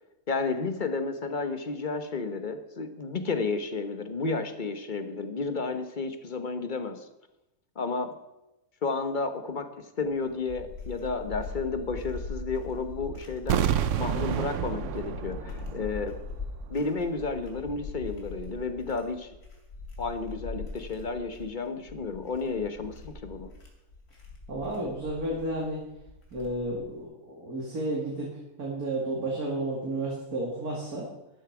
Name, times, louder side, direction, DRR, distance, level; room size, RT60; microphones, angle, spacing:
voice 1, 0.3-7.1 7.7-8.2 8.8-13.6 14.0-16.2 16.7-19.3 20.0-23.5, left 4 dB, 35° left, 8 dB, 1.1 m, -32 dB
sound 1, 10.0-26.9, left 3 dB, 90° left, 3.2 m, -42 dB
sound 2, 13.5-16.4 16.6-16.7, right 9 dB, 65° right, 1.0 m, -29 dB
voice 2, 24.5-25.8 26.3-28.3 28.6-31.1, right 1 dB, 85° right, -3 dB, 2.9 m, -32 dB
13.0 x 11.5 x 4.9 m, 0.93 s
omnidirectional pair, 1.6 m